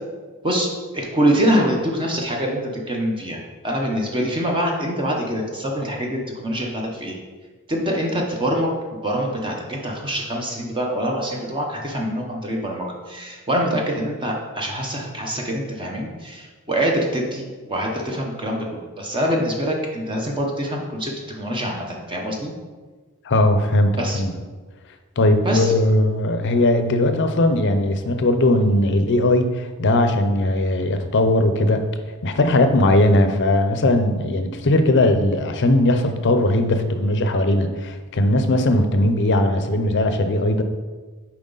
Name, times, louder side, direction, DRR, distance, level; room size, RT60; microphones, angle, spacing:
voice 1, 0.4-7.2 7.7-8.7 9.0-22.5 24.0-24.2 25.4-25.7, equal, 20° right, 0 dB, 0.8 m, -24 dB
voice 2, 23.3-24.3 25.2-31.9 32.2-40.6, left 1 dB, 55° left, 8 dB, 0.6 m, -19 dB
7.2 x 4.7 x 4.0 m, 1.4 s
head